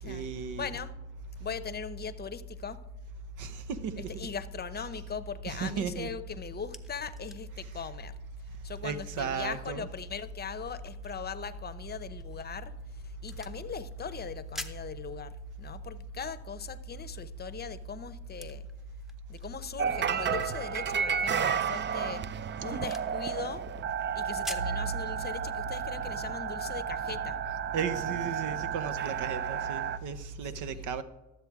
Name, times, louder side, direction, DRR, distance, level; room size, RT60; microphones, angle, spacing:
voice 1, 0.0-0.7 3.4-4.1 5.5-6.1 8.8-9.9 27.7-31.0, right 6 dB, 80° right, 0.9 m, -35 dB
voice 2, 0.6-1.0 1.4-2.8 4.0-8.2 8.6-18.7 19.3-22.2 22.6-23.6 24.1-27.4 30.7-30.8, left 6 dB, 35° left, 0.7 m, -39 dB
sound 1, 6.3-24.8, left 1 dB, ahead, 0.8 m, -51 dB
sound 2, 19.8-30.0, right 7 dB, 35° right, 0.4 m, -32 dB
12.5 x 7.7 x 4.7 m
cardioid pair, 90°, 30 cm